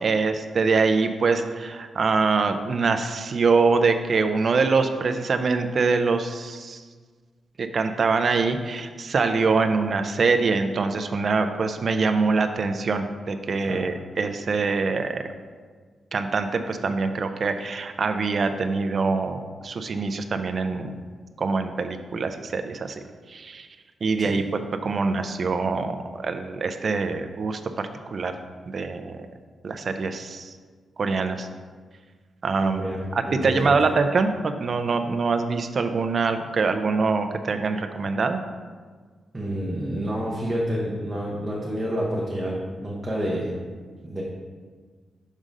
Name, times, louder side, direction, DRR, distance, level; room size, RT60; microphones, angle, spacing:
voice 1, 0.0-6.8 7.6-15.2 16.1-21.0 21.4-23.0 23.3-23.7 24.0-28.3 28.7-29.3 29.6-30.6 31.0-31.5 32.4-32.8 33.1-38.4, right 4 dB, 40° right, 7 dB, 0.4 m, -24 dB
voice 2, 32.6-33.0 33.3-33.8 39.3-43.6 44.0-44.2, equal, 15° right, -6 dB, 0.8 m, -28 dB
6.3 x 3.7 x 5.2 m, 1.5 s
wide cardioid pair, 160°, 0 cm